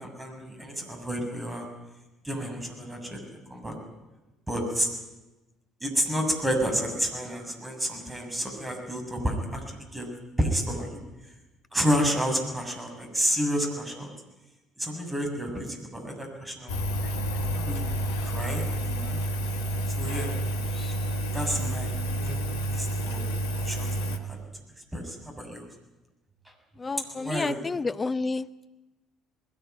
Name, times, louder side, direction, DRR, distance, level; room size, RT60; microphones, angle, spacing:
voice 1, 0.0-1.7 2.2-3.2 3.5-3.8 4.5-4.9 5.8-9.6 9.9-10.1 10.4-11.0 11.7-14.1 14.8-16.7 17.0-17.2 17.5-17.8 18.2-19.2 20.0-20.3 20.7-20.9 21.3-22.4 22.7-23.2 23.5-23.9 24.3-24.4 24.9-25.6 27.1-27.6, equal, 15° right, 3 dB, 7.1 m, -30 dB
Engine, 16.7-24.2, right 1 dB, 75° left, 1.7 m, -29 dB
voice 2, 26.8-28.7, left 3 dB, 25° left, 13 dB, 0.9 m, -30 dB
20.5 x 18.0 x 9.3 m, 1.1 s
figure-of-eight pair, 55°, 0 cm